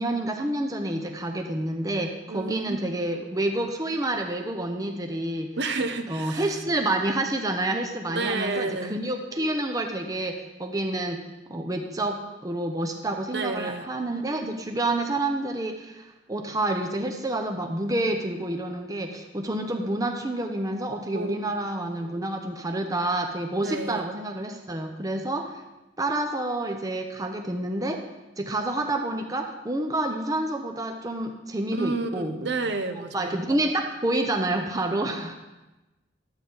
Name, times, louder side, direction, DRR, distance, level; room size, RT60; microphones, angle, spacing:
voice 1, 0.0-5.6 6.1-11.2 11.5-25.6 26.0-28.0 28.4-32.4 33.0-35.3, right 1 dB, 20° right, 4 dB, 0.7 m, -28 dB
voice 2, 2.3-2.8 5.6-6.5 8.1-9.0 13.3-13.9 21.1-21.4 23.6-24.1 31.7-33.4, right 3 dB, 65° right, 8 dB, 0.8 m, -30 dB
11.5 x 8.7 x 3.9 m, 1.1 s
head